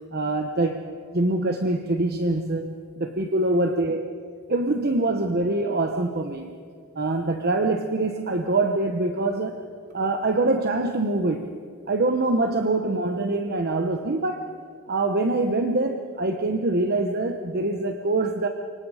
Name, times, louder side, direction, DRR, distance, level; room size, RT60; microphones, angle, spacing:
voice 1, 0.1-4.0 4.5-6.6 6.9-9.6 9.9-11.6 11.9-14.5 14.9-18.5, right 2 dB, 45° right, 5 dB, 1.0 m, -24 dB
29.0 x 25.0 x 5.0 m, 2.2 s
head